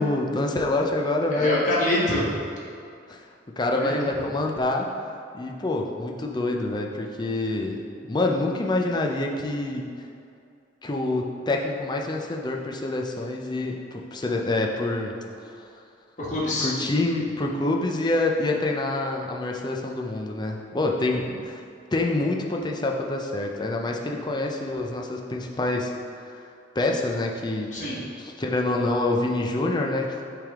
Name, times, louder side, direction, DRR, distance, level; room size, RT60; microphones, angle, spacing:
voice 1, 0.0-1.6 3.1-3.2 3.6-4.9 5.3-7.8 8.0-9.9 10.8-15.1 15.4-15.7 16.6-21.6 21.9-25.9 26.2-26.5 26.7-27.7 28.2-30.2, left 2 dB, 25° left, 1 dB, 0.5 m, -26 dB
voice 2, 1.3-2.3 3.8-4.0 16.2-16.7 27.7-28.0, left 1 dB, 40° left, -7 dB, 1.5 m, -25 dB
8.7 x 3.4 x 3.6 m, 2.4 s
head